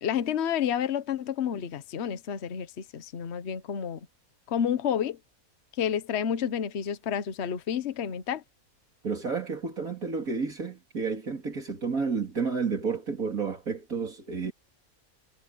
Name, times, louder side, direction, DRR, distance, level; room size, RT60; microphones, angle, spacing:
voice 1, 0.0-4.0 4.5-5.2 5.8-8.4, left 8 dB, 50° left, 1.2 m, -30 dB
voice 2, 9.0-14.5, right 5 dB, 65° right, 3.7 m, -31 dB
omnidirectional pair, 1.6 m